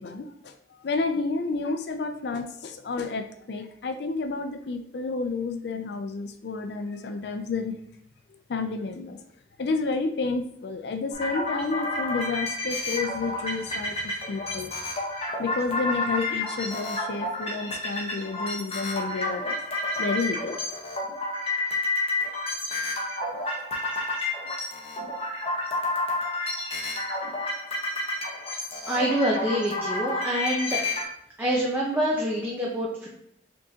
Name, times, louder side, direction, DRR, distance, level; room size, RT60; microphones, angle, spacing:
voice 1, 0.0-7.7 8.3-9.2 9.6-14.7 15.4-19.6 20.0-20.6, left 4 dB, 65° left, 8 dB, 0.4 m, -30 dB
sound 1, 11.1-31.0, left 2 dB, 35° left, 1.1 m, -30 dB
voice 2, 28.9-30.8 31.4-33.1, right 1 dB, 10° right, -4 dB, 0.7 m, -26 dB
5.2 x 3.6 x 2.8 m, 0.73 s
head